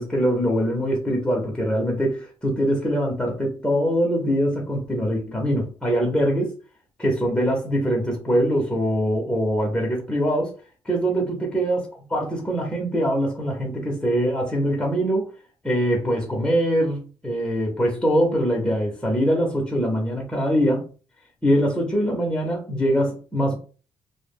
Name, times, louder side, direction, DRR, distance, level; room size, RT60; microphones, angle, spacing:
voice 1, 0.0-6.5 7.0-10.5 10.8-11.8 12.1-15.3 15.6-20.9 21.4-23.5, equal, 10° left, 0.7 m, -23 dB
2.1 x 2.0 x 3.4 m
cardioid pair, 105°, 9 cm